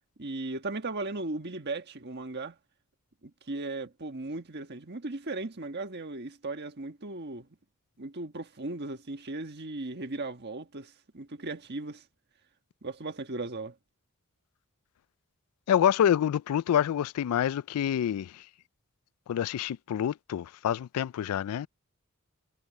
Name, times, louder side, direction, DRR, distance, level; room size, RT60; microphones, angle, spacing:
voice 1, 0.2-2.6 3.2-7.5 8.0-12.0 12.8-13.7, right 2 dB, 50° right, 1.5 m, -37 dB
voice 2, 15.7-18.4 19.3-21.7, left 9 dB, 85° left, 0.3 m, -27 dB
head